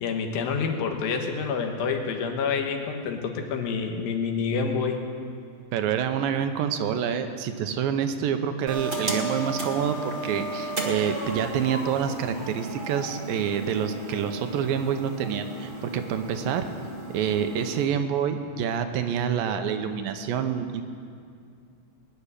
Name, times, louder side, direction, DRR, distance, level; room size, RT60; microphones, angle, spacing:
voice 1, 0.0-5.0, left 5 dB, 80° left, 4 dB, 3.0 m, -28 dB
voice 2, 5.7-16.7 17.1-20.8, right 8 dB, 80° right, 8 dB, 2.5 m, -27 dB
sound 1, 8.7-17.8, right 2 dB, 45° right, 0.6 m, -34 dB
20.0 x 7.0 x 9.9 m, 2.3 s
omnidirectional pair, 4.1 m